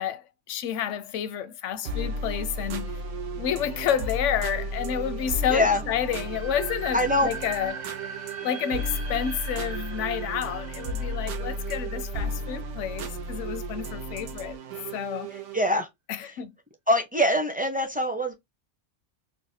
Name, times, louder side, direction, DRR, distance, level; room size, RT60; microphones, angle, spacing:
voice 1, 0.0-2.9 3.4-7.9 8.4-14.6 14.9-15.3 16.1-16.5, left 9 dB, 80° left, 0.9 m, -30 dB
sound 1, 1.8-15.7, right 1 dB, 80° right, 1.0 m, -34 dB
voice 2, 5.5-5.8 6.9-7.3 15.3-15.9 16.2-16.3 16.9-18.3, left 1 dB, 10° right, 0.5 m, -24 dB
sound 2, 6.1-12.9, right 5 dB, 55° right, 1.5 m, -41 dB
4.7 x 2.1 x 2.7 m
omnidirectional pair, 1.2 m